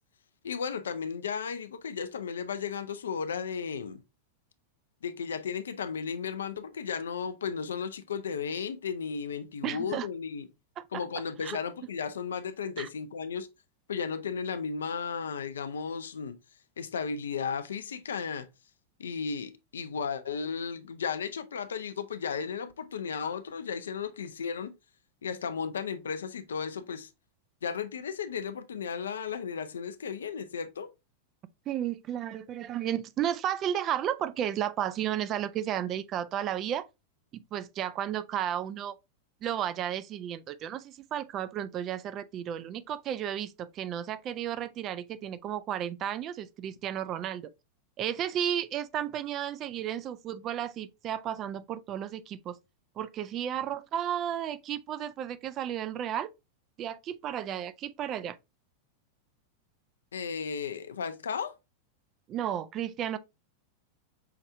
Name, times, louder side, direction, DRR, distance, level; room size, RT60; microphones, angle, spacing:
voice 1, 0.4-4.0 5.0-10.5 10.9-13.5 13.9-16.4 16.8-18.5 19.0-24.7 25.2-27.1 27.6-30.9 60.1-61.6, left 6 dB, 65° left, 0.5 m, -34 dB
voice 2, 9.6-10.1 10.8-11.0 11.4-11.6 12.8-12.9 31.7-36.9 37.3-39.0 39.4-47.5 48.0-52.6 53.0-56.3 56.8-58.4 62.3-63.2, right 10 dB, 35° right, 0.4 m, -33 dB
5.7 x 3.1 x 2.6 m
figure-of-eight pair, 90°, 0 cm